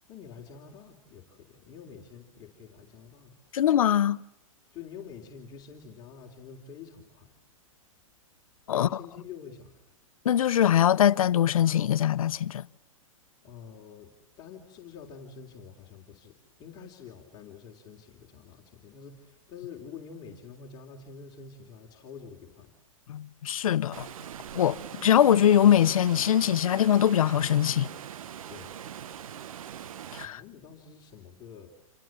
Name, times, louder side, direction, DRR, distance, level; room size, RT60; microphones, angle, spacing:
voice 1, 0.1-3.6 4.7-7.3 8.7-9.8 13.4-22.7 28.5-28.8 30.2-31.7, left 6 dB, 25° left, 3.6 m, -47 dB
voice 2, 3.5-4.2 8.7-9.0 10.2-12.6 23.1-24.1 24.5-27.9 30.1-30.4, left 10 dB, 75° left, 1.1 m, -22 dB
Water, 23.9-30.3, right 9 dB, 70° right, 1.1 m, -42 dB
28.5 x 26.5 x 7.5 m
hypercardioid pair, 155°, 18 cm